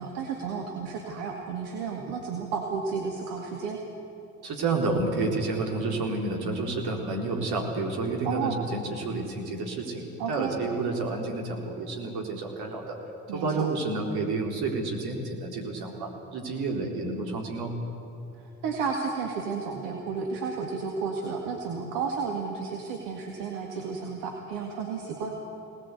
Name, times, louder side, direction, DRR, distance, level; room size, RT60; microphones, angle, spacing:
voice 1, 0.0-3.8 8.2-8.6 10.2-10.5 13.3-13.7 18.6-25.4, right 5 dB, 75° right, 1 dB, 1.9 m, -32 dB
voice 2, 4.4-13.0 13.3-17.8, right 3 dB, 60° right, 0 dB, 4.0 m, -30 dB
24.0 x 19.0 x 8.3 m, 2.8 s
hypercardioid pair, 45°, 43 cm